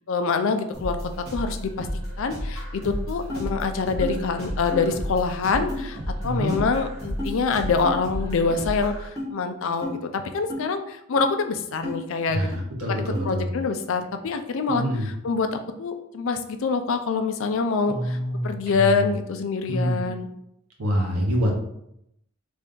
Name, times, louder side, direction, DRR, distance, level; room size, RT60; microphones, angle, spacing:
voice 1, 0.1-1.9 2.2-12.5 12.9-14.8 15.2-18.2 18.4-20.3, left 4 dB, 60° left, 7 dB, 0.4 m, -25 dB
sound 1, 0.7-9.1, equal, 45° right, 1.2 m, -33 dB
sound 2, 3.3-3.4 4.0-4.2 4.7-4.9 5.7-5.8 6.5-6.6 7.2-7.3 7.8-8.0 8.5-8.6 9.2-9.3 9.8-10.0 10.5-10.6 11.2-11.3 11.8-12.0 12.5-12.6 13.1-13.3, left 1 dB, 15° left, 1.0 m, -31 dB
voice 2, 6.2-6.5 12.3-13.5 14.7-15.1 17.9-19.1 19.7-20.0 20.8-21.5, equal, 80° right, 0 dB, 0.9 m, -26 dB
3.3 x 2.6 x 3.7 m, 0.77 s
head